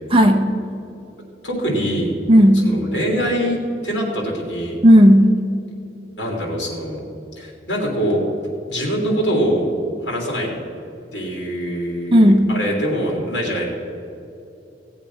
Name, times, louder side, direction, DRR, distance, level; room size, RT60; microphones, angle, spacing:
voice 1, 0.1-0.5 2.3-2.6 4.8-5.3 12.1-12.5, equal, 30° right, 4 dB, 1.2 m, -11 dB
voice 2, 1.4-2.1 2.5-3.6 3.8-4.8 6.2-7.0 7.4-8.2 8.7-9.7 10.0-10.5 11.1-13.7, equal, 80° left, -1 dB, 3.7 m, -23 dB
17.5 x 8.1 x 5.8 m, 2.8 s
head